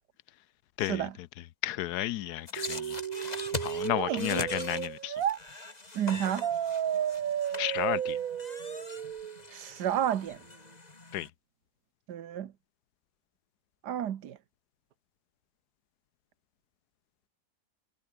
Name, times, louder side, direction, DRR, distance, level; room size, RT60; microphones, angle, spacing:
voice 1, 0.8-1.3 1.6-5.2 7.6-8.2 11.1-11.3, left 14 dB, 75° left, 1.2 m, -33 dB
sound 1, 2.5-11.3, left 2 dB, 25° left, 2.4 m, -42 dB
sound 2, 2.6-5.4 6.4-9.4, right 9 dB, 60° right, 1.4 m, -33 dB
voice 2, 4.0-4.4 5.9-6.5 9.5-10.4 12.1-12.5 13.8-14.4, right 10 dB, 85° right, 1.7 m, -31 dB
omnidirectional pair, 1.7 m